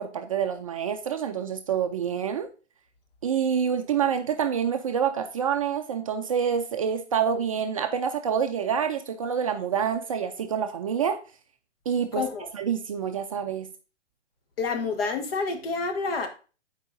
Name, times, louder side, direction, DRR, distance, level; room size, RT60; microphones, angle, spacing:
voice 1, 0.0-2.5 3.2-11.2 11.9-12.2 12.5-13.7, right 7 dB, 30° right, 0.4 m, -27 dB
voice 2, 12.1-12.5 14.6-16.3, left 4 dB, 55° left, 1.4 m, -28 dB
8.6 x 4.7 x 2.6 m
hypercardioid pair, 135°, 35 cm